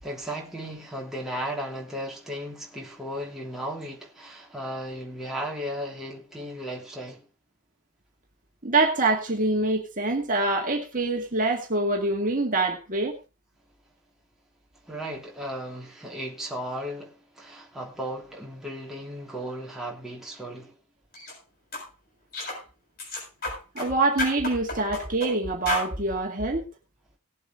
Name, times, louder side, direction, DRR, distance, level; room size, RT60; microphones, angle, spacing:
voice 1, 0.0-7.2 14.8-20.7, equal, ahead, 3.0 m, -35 dB
voice 2, 8.6-13.2 23.8-26.6, right 2 dB, 35° right, 2.0 m, -25 dB
sound 1, 21.1-21.3 21.7-21.9 22.3-22.6 23.0-23.9 24.2-25.3 25.7-25.9, left 2 dB, 45° left, 7.0 m, -31 dB
19.0 x 7.8 x 3.7 m
head